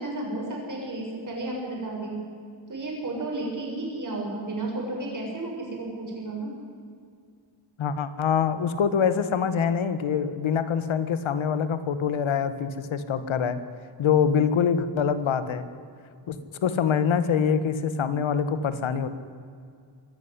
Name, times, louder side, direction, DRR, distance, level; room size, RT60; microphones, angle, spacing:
voice 1, 0.0-2.2 2.7-6.5, right 2 dB, 40° right, -1 dB, 6.8 m, -32 dB
voice 2, 7.8-13.6 14.0-15.7 16.3-19.1, left 7 dB, 85° left, 12 dB, 1.7 m, -25 dB
23.0 x 14.0 x 9.8 m, 2.2 s
wide cardioid pair, 155°, 46 cm